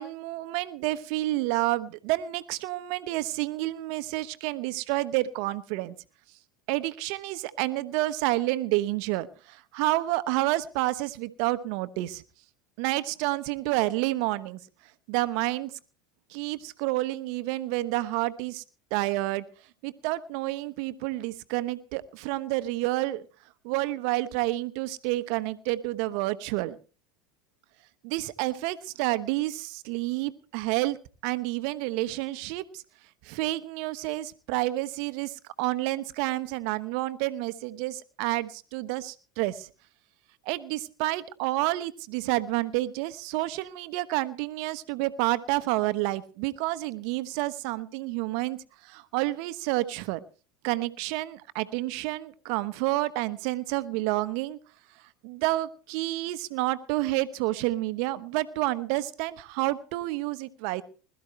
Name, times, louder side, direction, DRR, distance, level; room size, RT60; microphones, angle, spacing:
voice 1, 0.0-5.9 6.7-12.2 12.8-14.6 15.1-15.7 16.3-18.6 18.9-19.5 19.8-23.2 23.6-26.8 28.0-31.0 31.2-32.8 33.2-39.7 40.4-50.2 50.6-54.6 55.2-60.8, right 18 dB, 60° right, 13 dB, 1.0 m, -29 dB
21.0 x 13.0 x 3.2 m, 0.36 s
hypercardioid pair, 85°, 0 cm